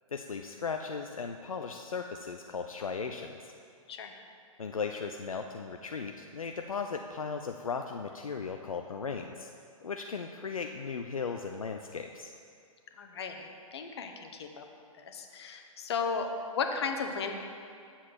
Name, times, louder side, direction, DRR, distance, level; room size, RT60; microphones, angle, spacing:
voice 1, 0.1-3.5 4.6-9.5 9.8-12.3, left 5 dB, 70° left, 4 dB, 0.5 m, -37 dB
voice 2, 13.0-14.6 15.1-16.3 16.5-17.3, left 5 dB, 50° left, 4 dB, 0.9 m, -35 dB
8.7 x 7.3 x 4.5 m, 2.4 s
figure-of-eight pair, 115°, 18 cm